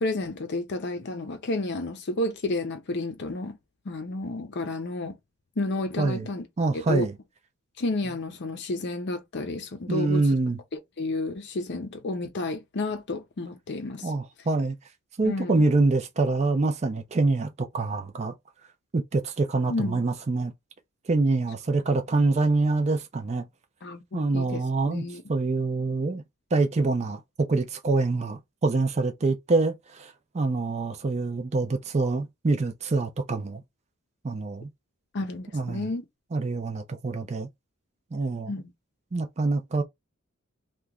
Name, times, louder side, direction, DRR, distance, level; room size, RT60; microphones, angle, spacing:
voice 1, 0.0-3.6 3.9-5.2 5.6-6.5 6.7-7.1 7.8-10.2 11.0-14.1 15.2-15.6 19.7-20.0 23.8-25.2 35.1-36.0 38.5-38.6, left 2 dB, 50° left, 0.6 m, -31 dB
voice 2, 6.0-6.3 6.6-7.1 9.9-10.6 14.0-14.8 15.2-18.3 18.9-20.5 21.1-23.5 24.1-25.0 25.3-26.2 26.5-33.6 34.2-34.7 35.5-35.9 36.3-37.5 38.1-38.5 39.1-39.8, right 3 dB, 30° right, 0.4 m, -25 dB
2.9 x 2.2 x 3.5 m
head